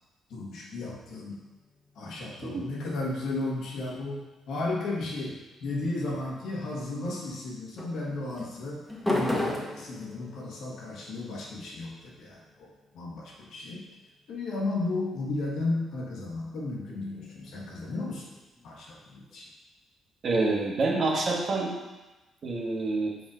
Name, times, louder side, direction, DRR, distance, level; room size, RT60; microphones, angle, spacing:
voice 1, 0.3-1.4 1.9-8.8 9.1-12.7 12.9-13.9 14.3-18.3 18.6-19.5, left 2 dB, 75° left, -3 dB, 1.7 m, -34 dB
sound 1, 1.4-2.6 6.2-6.7 7.8-14.5 16.3-19.3, left 1 dB, 10° left, 1.4 m, -38 dB
voice 2, 20.2-21.7 22.4-23.1, right 3 dB, 50° right, -1 dB, 1.5 m, -27 dB
5.3 x 4.6 x 4.9 m, 1.1 s
cardioid pair, 90°, 0 cm